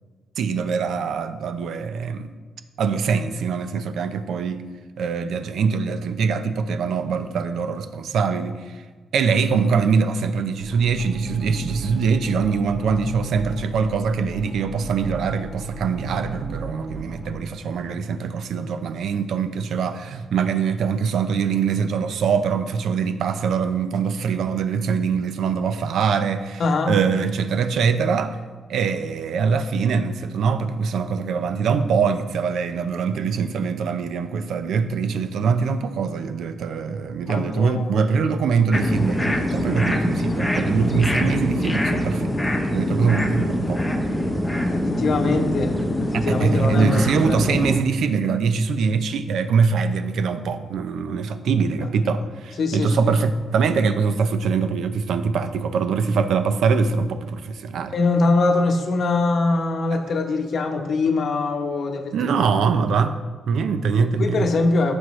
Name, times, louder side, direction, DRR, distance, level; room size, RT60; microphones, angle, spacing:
voice 1, 0.4-2.3 2.8-4.6 5.0-8.8 9.1-28.4 28.7-43.8 46.1-58.0 59.9-60.0 62.1-63.2 63.5-64.5, right 5 dB, 65° right, 9 dB, 0.6 m, -23 dB
sound 1, 10.6-17.3, right 2 dB, 40° right, 1.6 m, -34 dB
voice 2, 26.6-27.0 37.3-37.9 44.7-45.7 46.0-47.5 52.6-53.1 57.9-62.1 64.2-65.0, left 3 dB, 45° left, 5 dB, 0.9 m, -22 dB
sound 2, 38.7-47.8, left 1 dB, 5° left, 0.7 m, -24 dB
14.5 x 6.2 x 3.1 m, 1.4 s
wide cardioid pair, 180°, 0 cm